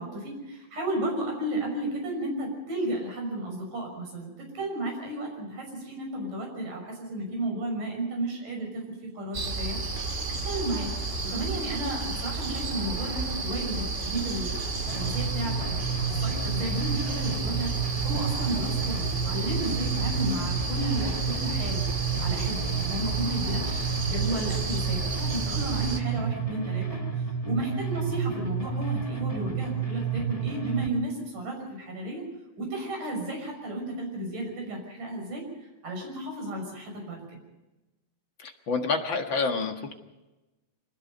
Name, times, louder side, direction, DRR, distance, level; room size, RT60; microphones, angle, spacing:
voice 1, 0.0-9.8 10.4-10.9 11.2-17.7 18.0-21.9 22.2-23.8 24.1-32.2 32.6-35.4 35.8-37.4, right 1 dB, 65° right, 1 dB, 7.7 m, -33 dB
sound 1, 9.3-26.0, right 3 dB, 25° right, 1.8 m, -32 dB
sound 2, 14.9-30.9, right 6 dB, 15° left, 1.2 m, -31 dB
voice 2, 38.4-40.0, left 4 dB, 45° left, 4 dB, 1.9 m, -28 dB
25.0 x 20.5 x 5.4 m, 1.0 s
omnidirectional pair, 3.9 m